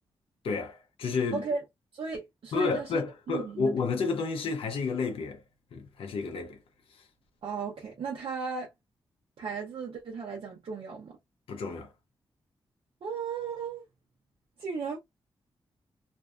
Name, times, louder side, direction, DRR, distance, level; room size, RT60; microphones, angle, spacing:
voice 1, 0.4-1.4 2.5-5.4 5.7-6.6 6.9-7.0 11.5-11.9, left 4 dB, 80° left, 0.6 m, -31 dB
voice 2, 1.3-1.6 1.9-3.0 3.3-3.7 7.4-8.7 9.4-11.2 13.0-13.8 14.6-15.0, right 5 dB, 75° right, 0.8 m, -35 dB
2.6 x 2.3 x 2.3 m
cardioid pair, 75°, 9 cm